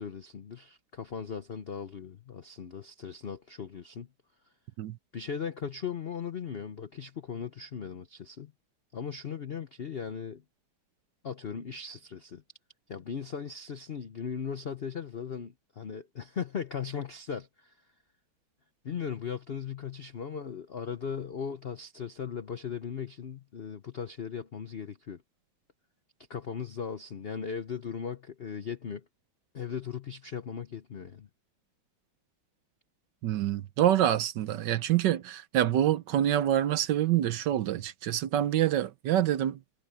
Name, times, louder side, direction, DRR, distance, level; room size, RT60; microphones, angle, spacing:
voice 1, 0.0-4.1 5.1-8.5 8.9-10.4 11.2-12.4 12.9-17.8 18.8-25.2 26.3-29.0 29.5-31.3, left 7 dB, 90° left, 0.5 m, -38 dB
voice 2, 33.2-39.6, right 11 dB, 65° right, 1.3 m, -26 dB
omnidirectional pair, 2.2 m